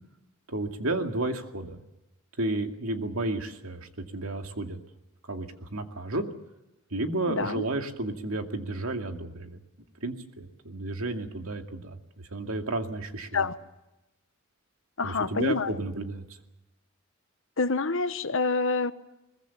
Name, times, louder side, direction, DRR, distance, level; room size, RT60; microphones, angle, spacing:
voice 1, 0.5-1.8 2.4-4.8 5.3-6.2 6.9-9.6 10.0-13.5 15.0-16.2, right 2 dB, 75° right, 5 dB, 2.4 m, -32 dB
voice 2, 7.3-7.6 13.3-13.6 15.0-15.7 17.6-18.9, left 4 dB, 65° left, 12 dB, 1.1 m, -27 dB
22.5 x 20.5 x 7.1 m, 0.96 s
head